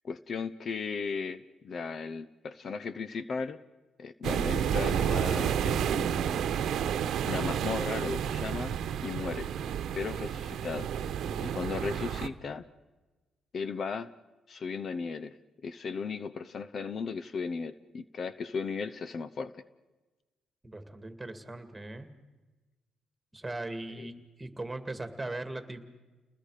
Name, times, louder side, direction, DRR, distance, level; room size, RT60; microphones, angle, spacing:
voice 1, 0.0-3.6 4.0-6.4 7.2-8.7 9.0-9.5 9.9-10.9 11.4-12.6 13.5-14.1 14.5-15.4 15.6-19.6 24.0-24.2, left 5 dB, 50° left, 14 dB, 0.8 m, -36 dB
sound 1, 4.2-12.3, right 9 dB, 75° right, 1.0 m, -30 dB
voice 2, 20.6-22.1 23.3-24.1 24.4-25.8, right 2 dB, 15° right, 8 dB, 2.4 m, -39 dB
30.0 x 20.5 x 5.0 m, 1.2 s
cardioid pair, 90°, 0 cm